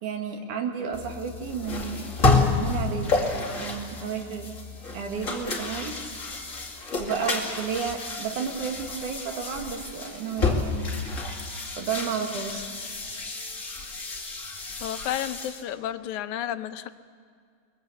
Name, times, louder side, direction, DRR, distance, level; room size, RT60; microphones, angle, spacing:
voice 1, 0.0-4.6 4.9-6.0 7.0-11.0 11.8-12.9, right 6 dB, 85° right, 3 dB, 3.5 m, -32 dB
sound 1, 0.9-15.6, left 3 dB, 30° left, 2.4 m, -30 dB
voice 2, 14.8-16.9, left 11 dB, 80° left, 10 dB, 2.2 m, -31 dB
23.0 x 22.0 x 8.2 m, 2.2 s
omnidirectional pair, 3.4 m